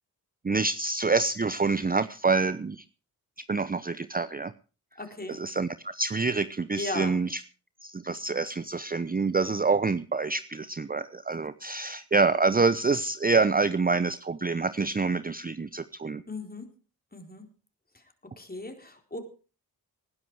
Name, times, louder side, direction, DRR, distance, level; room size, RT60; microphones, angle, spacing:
voice 1, 0.4-2.8 3.5-4.5 5.3-7.4 7.8-16.2, right 4 dB, 20° right, 14 dB, 0.7 m, -26 dB
voice 2, 5.0-5.4 6.8-7.2 16.3-16.7 17.1-17.5 17.9-18.0 18.4-19.2, left 2 dB, 25° left, 5 dB, 4.3 m, -37 dB
19.5 x 10.5 x 4.8 m, 0.35 s
supercardioid pair, 45°, 40 cm